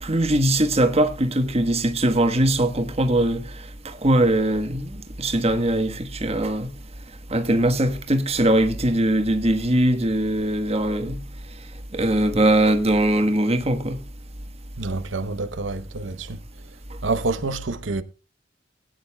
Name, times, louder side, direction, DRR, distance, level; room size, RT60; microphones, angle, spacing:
voice 1, 0.0-3.4 3.8-6.7 7.3-11.2 11.9-14.0, right 1 dB, 35° right, 1.3 m, -21 dB
voice 2, 14.8-16.4 17.0-18.0, right 3 dB, 85° right, 0.9 m, -27 dB
20.5 x 9.3 x 2.3 m
head